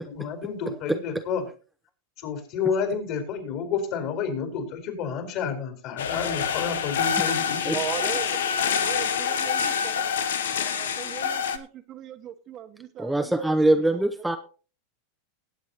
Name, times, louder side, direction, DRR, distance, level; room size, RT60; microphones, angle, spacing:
voice 1, 0.0-1.4 2.2-7.8, left 6 dB, 55° left, 6 dB, 4.3 m, -30 dB
sound 1, 6.0-11.6, left 7 dB, 85° left, 0.9 m, -26 dB
voice 2, 7.7-10.1 10.6-14.4, right 10 dB, 40° right, 8 dB, 1.1 m, -39 dB
voice 3, 13.0-14.4, right 1 dB, 5° right, 6 dB, 0.7 m, -22 dB
20.0 x 8.2 x 2.9 m, 0.37 s
hypercardioid pair, 110°, 0 cm